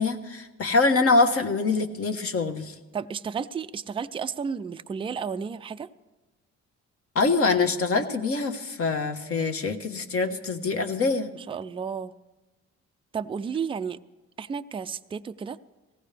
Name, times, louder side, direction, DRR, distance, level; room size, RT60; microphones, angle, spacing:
voice 1, 0.0-2.7 7.1-11.3, left 3 dB, 50° left, 6 dB, 1.2 m, -24 dB
voice 2, 2.9-5.9 11.3-12.1 13.1-14.0 14.4-15.6, right 6 dB, 20° right, 11 dB, 0.3 m, -32 dB
18.5 x 15.5 x 3.3 m, 1.1 s
cardioid pair, 90°, 30 cm